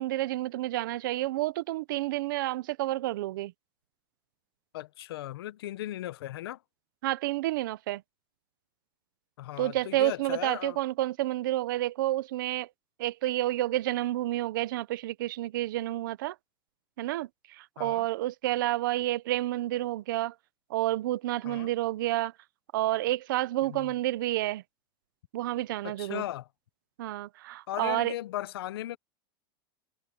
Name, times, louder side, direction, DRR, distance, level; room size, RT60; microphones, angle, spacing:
voice 1, 0.0-3.5 7.0-8.0 9.6-12.7 13.0-16.4 17.0-20.3 20.7-22.3 22.7-24.6 25.3-26.2 27.0-28.1, right 16 dB, 60° right, 0.8 m, -30 dB
voice 2, 4.7-6.6 9.4-10.8 17.8-18.0 21.4-21.7 23.6-23.9 25.8-26.5 27.7-29.0, left 14 dB, 90° left, 0.8 m, -37 dB
supercardioid pair, 180°, 12 cm